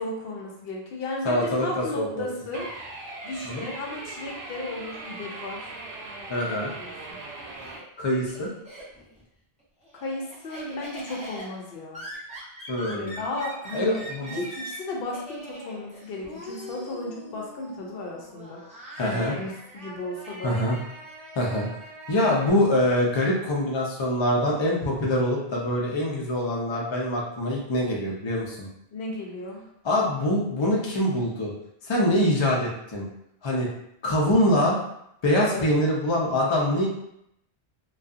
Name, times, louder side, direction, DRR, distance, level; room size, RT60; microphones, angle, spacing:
voice 1, 0.0-2.7 3.2-5.7 6.4-7.2 9.9-12.0 12.9-20.6 28.9-29.7 35.4-35.6, left 2 dB, 70° left, -1 dB, 0.8 m, -35 dB
voice 2, 1.2-2.3 3.4-3.7 6.3-6.7 8.0-8.5 12.7-13.2 13.7-14.4 19.0-19.3 20.4-20.8 21.4-21.7 22.1-28.7 29.8-31.5 31.8-33.1 33.4-33.7 34.0-34.8 35.2-36.9, left 1 dB, 35° left, -3 dB, 0.5 m, -24 dB
sound 1, 2.5-7.8, right 2 dB, 90° right, 0.9 m, -39 dB
Laughter, 7.1-9.2 9.6-22.5, right 1 dB, 10° right, 0.6 m, -42 dB
2.6 x 2.3 x 2.4 m, 0.76 s
omnidirectional pair, 1.0 m